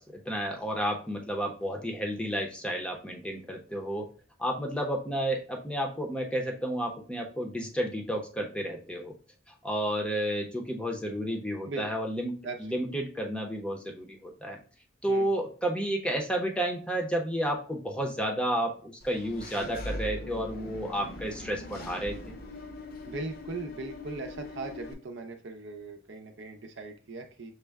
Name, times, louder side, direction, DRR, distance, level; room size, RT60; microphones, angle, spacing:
voice 1, 0.0-4.1 4.4-9.1 9.6-14.6 15.0-22.3, right 1 dB, 5° left, 1 dB, 0.7 m, -31 dB
voice 2, 12.4-12.9 15.1-15.3 23.0-27.5, right 3 dB, 60° right, 4 dB, 0.6 m, -39 dB
Engine / Mechanisms, 19.0-24.9, left 1 dB, 50° left, 0.7 m, -41 dB
6.3 x 2.1 x 3.4 m, 0.38 s
head